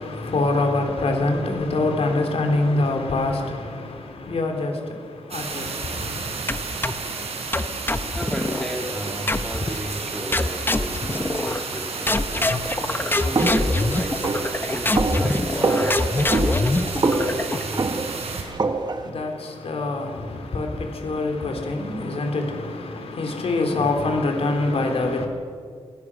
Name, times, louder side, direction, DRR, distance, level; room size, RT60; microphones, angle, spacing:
voice 1, 0.0-6.4 18.4-25.3, left 2 dB, 65° left, 3.5 m, -25 dB
sound 1, 5.3-18.4, right 4 dB, 70° right, 4.2 m, -32 dB
sound 2, 6.5-7.1 7.5-8.7 9.3-9.8 10.3-11.8 12.1-17.8, left 2 dB, 20° left, 0.9 m, -24 dB
voice 2, 8.1-17.9, equal, 5° left, 2.7 m, -35 dB
sound 3, 13.3-19.1, right 3 dB, 40° right, 1.5 m, -25 dB
24.5 x 17.0 x 6.3 m
wide cardioid pair, 105°, 11 cm